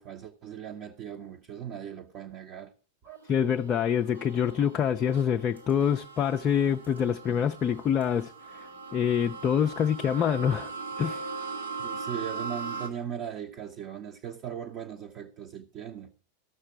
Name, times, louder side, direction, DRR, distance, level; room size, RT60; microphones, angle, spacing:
voice 1, 0.0-2.7 3.0-3.2 11.8-16.1, right 9 dB, 35° right, 0.8 m, -39 dB
sound 1, 3.2-12.9, right 4 dB, 85° right, 2.0 m, -40 dB
voice 2, 3.3-10.7 11.0-11.3, left 8 dB, 30° left, 0.4 m, -26 dB
14.0 x 6.6 x 4.6 m
figure-of-eight pair, 90°, 0 cm